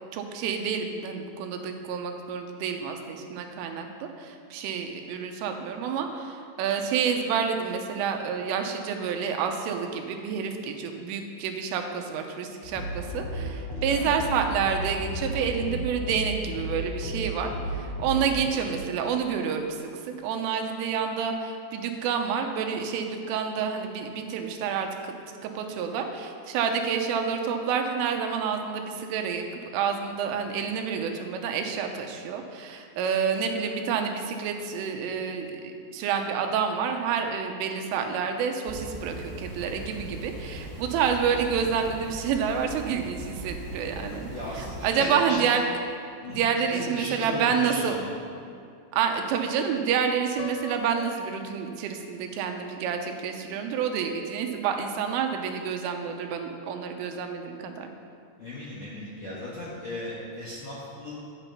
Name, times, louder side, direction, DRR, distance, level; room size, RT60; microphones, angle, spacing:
voice 1, 0.1-45.6 46.3-48.0 48.9-57.9, right 6 dB, 85° right, 4 dB, 3.3 m, -29 dB
sound 1, 12.6-18.5, right 1 dB, 15° left, 1.0 m, -33 dB
sound 2, 38.6-44.9, right 1 dB, 30° right, 2.2 m, -39 dB
voice 2, 44.0-45.5 46.2-48.1 58.4-61.1, left 1 dB, 65° left, -8 dB, 1.7 m, -36 dB
Piano, 50.4-52.4, left 5 dB, 90° left, 2.6 m, -42 dB
11.5 x 9.1 x 5.6 m, 2.4 s
omnidirectional pair, 5.8 m